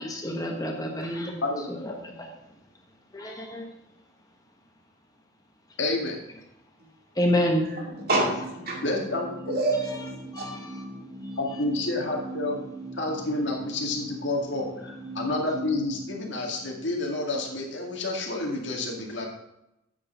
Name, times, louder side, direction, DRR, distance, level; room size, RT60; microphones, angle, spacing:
voice 1, 0.0-1.4 1.7-2.3 3.1-3.7 7.1-7.6 8.7-8.8 9.9-10.1 10.3-10.8 11.2-11.3, left 1 dB, 20° left, 1 dB, 1.2 m, -29 dB
voice 2, 1.4-2.0 5.8-6.2 8.8-9.6 11.4-12.6 12.9-19.3, left 2 dB, 65° left, 0 dB, 1.9 m, -29 dB
voice 3, 7.4-8.8 9.5-10.0 10.4-10.5, right 2 dB, 50° right, -1 dB, 2.3 m, -28 dB
sound 1, 7.9-17.7, right 2 dB, 15° right, 1.9 m, -40 dB
8.5 x 6.6 x 5.5 m, 0.88 s
head